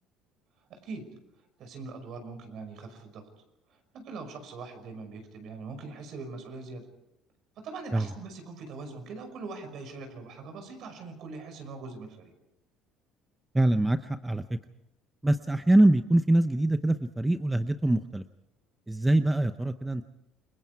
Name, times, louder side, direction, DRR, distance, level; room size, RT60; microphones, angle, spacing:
voice 1, 0.7-1.1 1.6-3.2 3.9-6.9 7.6-12.3, right 4 dB, 55° right, 7 dB, 5.6 m, -42 dB
voice 2, 13.5-14.6 15.2-18.2 18.9-20.0, right 1 dB, 10° right, 9 dB, 0.7 m, -24 dB
28.5 x 22.0 x 4.7 m, 0.89 s
cardioid pair, 130°, 0 cm